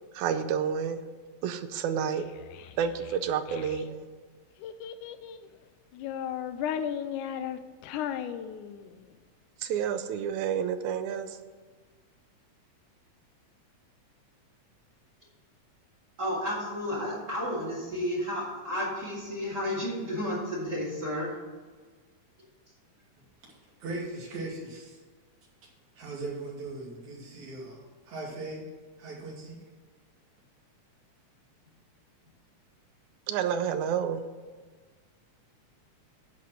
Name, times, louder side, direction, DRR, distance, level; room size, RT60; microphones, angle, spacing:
voice 1, 0.1-1.0 1.4-2.2 2.8-4.1 9.6-11.4 33.3-34.3, right 8 dB, 85° right, 9 dB, 2.0 m, -29 dB
Child speech kid speaking, 2.2-3.8 4.6-5.5 5.9-9.1, left 9 dB, 85° left, 2.1 m, -36 dB
voice 2, 16.2-21.3, equal, 35° right, -6 dB, 2.9 m, -32 dB
voice 3, 23.5-25.0 26.0-28.7 29.0-29.6, right 2 dB, 70° right, -4 dB, 3.8 m, -39 dB
10.0 x 4.4 x 7.7 m, 1.5 s
omnidirectional pair, 3.5 m